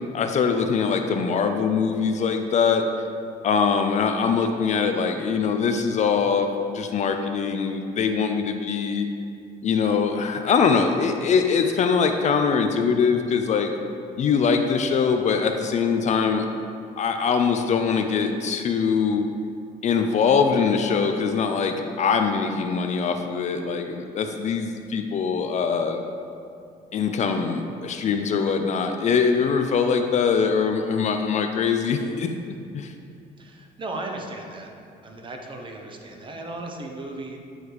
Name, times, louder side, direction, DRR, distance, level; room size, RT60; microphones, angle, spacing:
voice 1, 0.1-2.8 3.4-9.1 9.6-13.7 14.2-16.5 17.0-19.2 19.8-26.0 26.9-32.3 32.7-32.9, left 5 dB, 45° left, 6 dB, 0.5 m, -22 dB
voice 2, 33.4-34.7 35.0-37.4, right 2 dB, 30° right, 2 dB, 0.8 m, -36 dB
8.9 x 3.2 x 4.7 m, 2.4 s
cardioid pair, 110°, 17 cm